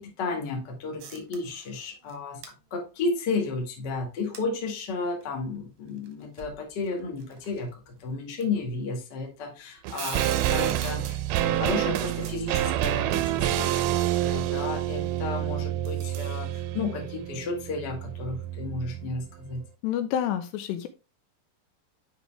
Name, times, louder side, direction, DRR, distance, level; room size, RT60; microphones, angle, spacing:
voice 1, 0.0-2.4 2.7-19.6, left 3 dB, 45° left, 2 dB, 1.4 m, -33 dB
sound 1, 1.0-1.8 2.1-2.2 2.4-2.5 4.3-4.4 5.2-5.3 6.1-6.2 6.4-6.6 7.2-7.6 8.4-8.5 9.9-10.9, right 7 dB, 65° right, 1.9 m, -38 dB
sound 2, 9.8-19.2 19.5-19.6, right 13 dB, 85° right, 2.7 m, -28 dB
voice 2, 19.8-20.9, left 10 dB, 80° left, 10 dB, 2.7 m, -28 dB
9.3 x 5.0 x 3.3 m, 0.28 s
omnidirectional pair, 5.2 m